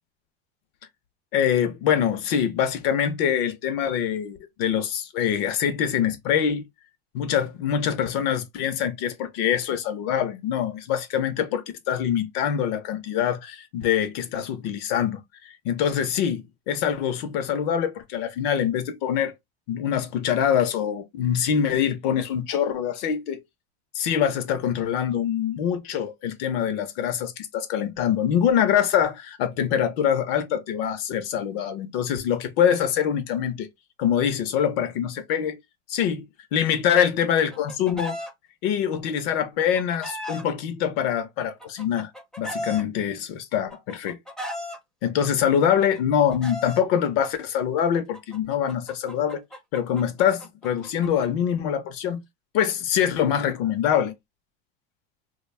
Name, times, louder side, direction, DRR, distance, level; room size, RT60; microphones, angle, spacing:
voice 1, 1.3-6.6 7.1-19.3 19.7-23.4 23.9-33.7 34.0-35.6 35.9-36.3 36.5-38.2 38.6-42.1 42.4-44.2 45.0-49.4 49.7-52.2 52.5-54.1, left 9 dB, 65° left, 0.7 m, -24 dB
Chicken rooster, 37.2-38.3 39.4-40.4 41.4-42.8 43.7-44.8 45.8-46.8 47.9-51.3, equal, ahead, 0.5 m, -36 dB
2.3 x 2.3 x 3.2 m
supercardioid pair, 155°, 32 cm